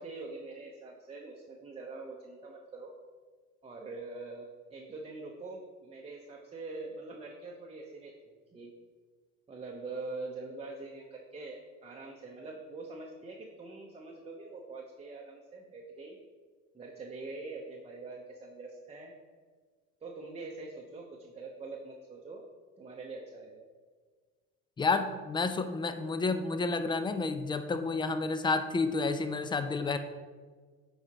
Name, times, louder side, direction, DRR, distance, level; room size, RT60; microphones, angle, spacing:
voice 1, 0.0-2.9 3.6-4.5 4.7-8.7 9.5-16.2 16.7-19.1 20.0-22.4 22.8-23.7, right 3 dB, 15° right, -1 dB, 0.7 m, -44 dB
voice 2, 24.8-30.0, left 3 dB, 15° left, 10 dB, 0.3 m, -30 dB
7.8 x 4.8 x 2.9 m, 1.5 s
hypercardioid pair, 75°, 39 cm